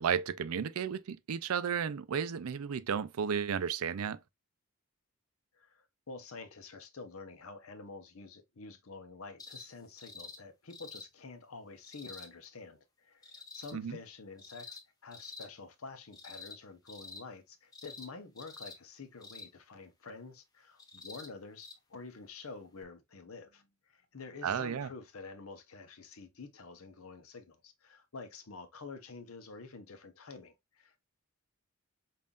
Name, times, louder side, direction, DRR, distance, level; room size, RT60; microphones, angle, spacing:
voice 1, 0.0-4.2 13.7-14.0 24.4-24.9, right 7 dB, 80° right, 0.4 m, -33 dB
voice 2, 5.5-31.0, left 4 dB, 75° left, 0.8 m, -49 dB
sound 1, 9.4-9.7 10.0-10.4 10.7-11.1 11.8-12.3 13.2-13.7 14.4-14.8 15.1-15.5 16.1-16.6 16.9-17.2 17.7-18.1 18.4-18.8 19.2-19.5 20.8-21.3 21.6-21.7 22.8-22.9, left 4 dB, 15° left, 0.6 m, -48 dB
5.4 x 2.6 x 2.3 m
head